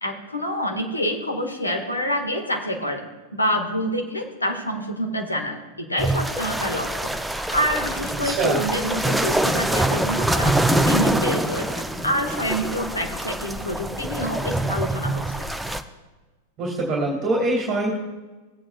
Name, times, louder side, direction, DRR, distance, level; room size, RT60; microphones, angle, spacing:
voice 1, 0.0-7.1 7.5-15.5, equal, 80° left, 2 dB, 1.7 m, -27 dB
sound 1, 6.0-15.8, right 1 dB, 5° right, 0.6 m, -24 dB
voice 2, 8.2-8.6 16.6-17.9, right 2 dB, 30° right, -2 dB, 2.5 m, -23 dB
17.5 x 8.6 x 2.4 m, 1.2 s
figure-of-eight pair, 90°, 0 cm